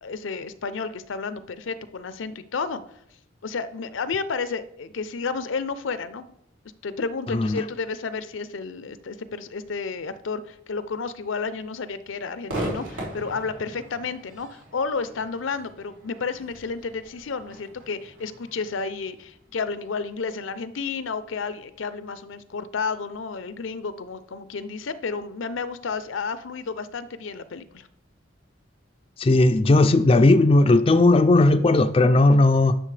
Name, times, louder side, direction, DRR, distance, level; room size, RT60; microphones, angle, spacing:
voice 1, 0.0-2.8 3.4-6.3 6.8-27.9, left 4 dB, 80° left, 13 dB, 0.6 m, -31 dB
voice 2, 7.3-7.6 29.2-32.8, left 2 dB, 30° left, 8 dB, 0.4 m, -17 dB
Crowd / Fireworks, 12.5-19.8, right 1 dB, 80° right, 3.2 m, -38 dB
11.0 x 6.4 x 3.3 m, 0.74 s
head